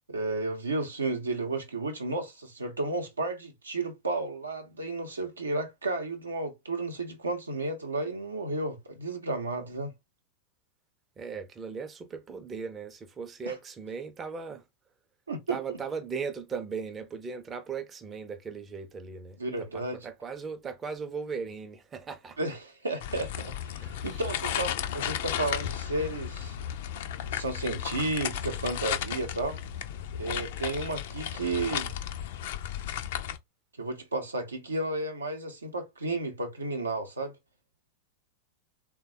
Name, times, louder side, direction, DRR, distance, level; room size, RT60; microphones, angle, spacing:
voice 1, 0.1-9.9 13.5-13.6 15.3-15.8 19.4-20.0 22.4-26.6 27.3-29.6 30.2-31.9 33.8-37.4, right 2 dB, 75° right, 0.6 m, -32 dB
voice 2, 11.2-14.6 15.5-22.4 23.8-24.2, right 5 dB, 20° right, 0.5 m, -38 dB
sound 1, 23.0-33.4, left 10 dB, 55° left, 0.3 m, -34 dB
3.2 x 2.2 x 2.7 m
figure-of-eight pair, 90°, 0 cm